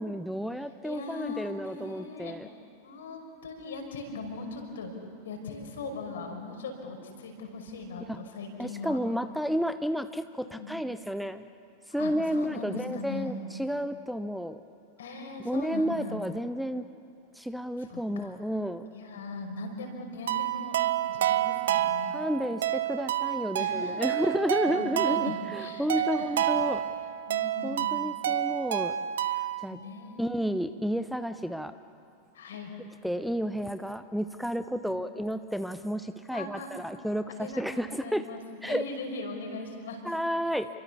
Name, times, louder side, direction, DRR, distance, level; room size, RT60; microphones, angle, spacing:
voice 1, 0.0-2.5 8.1-8.2 8.6-11.5 11.9-14.6 15.4-16.9 17.3-18.9 22.1-26.8 27.6-28.9 29.3-29.8 30.2-31.8 33.0-38.2 38.6-38.8 40.0-40.7, equal, ahead, 11 dB, 0.8 m, -31 dB
voice 2, 0.8-2.4 2.8-5.0 5.2-9.0 10.4-10.7 12.0-13.5 15.0-16.3 17.8-18.4 18.9-20.8 21.1-22.1 23.6-24.3 24.6-26.4 27.3-28.0 29.7-30.3 32.3-32.7 34.5-35.0 36.3-36.7 37.3-40.1, left 3 dB, 65° left, 3 dB, 5.4 m, -40 dB
sound 1, 20.3-29.7, right 12 dB, 60° right, 1.0 m, -29 dB
28.5 x 24.5 x 7.0 m, 2.5 s
figure-of-eight pair, 90°, 0 cm